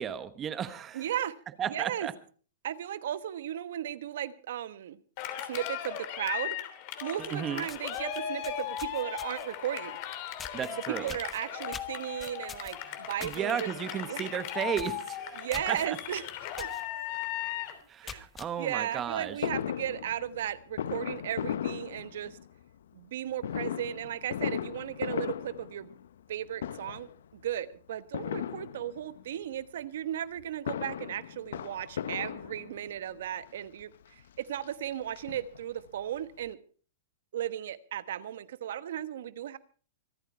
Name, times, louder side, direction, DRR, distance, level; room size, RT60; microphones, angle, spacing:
voice 1, 0.0-1.1 1.6-2.1 7.2-7.7 10.5-11.1 12.8-12.9 13.2-16.0 17.9-19.4, right 8 dB, 20° right, 12 dB, 1.1 m, -34 dB
voice 2, 0.9-1.3 1.7-2.1 2.6-5.0 5.5-6.6 7.0-10.0 11.0-13.7 14.1-14.3 15.4-16.3 16.6-16.7 18.0-18.2 18.6-22.4 22.9-25.9 26.3-33.9 34.4-36.6 37.3-39.6, right 11 dB, 70° right, 14 dB, 1.2 m, -35 dB
Cheering, 5.2-17.8, left 10 dB, 45° left, 3.0 m, -37 dB
sound 1, 7.2-7.3 7.6-9.6 10.4-10.7 11.1-13.4 13.8-14.0 14.3-14.4 14.7-15.0 15.5-15.9 16.6-16.8 17.3-17.4 17.9-18.5, left 6 dB, 15° left, 1.1 m, -44 dB
Fireworks, 19.4-22.6 23.4-26.3 26.6-27.2 28.1-29.2 30.4-33.0 33.8-33.9 34.2-34.3 34.6-35.9 36.2-36.3 36.5-36.6, left 9 dB, 80° left, 0.7 m, -36 dB
24.5 x 9.2 x 4.5 m, 0.42 s
hypercardioid pair, 145°, 0 cm